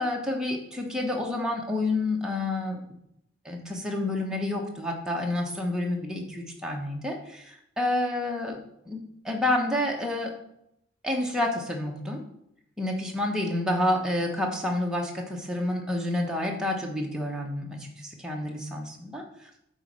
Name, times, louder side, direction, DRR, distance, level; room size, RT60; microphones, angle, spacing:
voice 1, 0.0-2.8 3.4-8.6 8.9-10.3 11.0-12.2 12.8-19.2, left 1 dB, 5° right, 0 dB, 1.1 m, -29 dB
8.4 x 4.1 x 6.1 m, 0.78 s
head